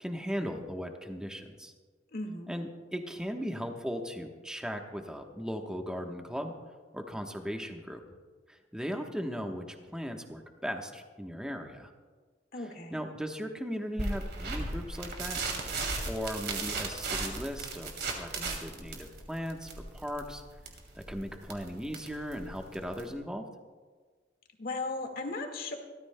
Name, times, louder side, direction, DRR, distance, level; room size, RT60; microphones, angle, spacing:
voice 1, 0.0-1.7 2.5-6.5 6.9-8.0 8.5-9.7 9.9-11.9 12.6-15.4 16.1-20.4 20.9-23.4, equal, 5° right, 3 dB, 1.0 m, -37 dB
voice 2, 2.1-2.5 12.5-13.0 24.6-25.8, left 2 dB, 55° left, 3 dB, 1.8 m, -36 dB
sound 1, 14.0-23.1, right 3 dB, 60° right, 2.4 m, -36 dB
26.5 x 13.5 x 2.2 m, 1.4 s
head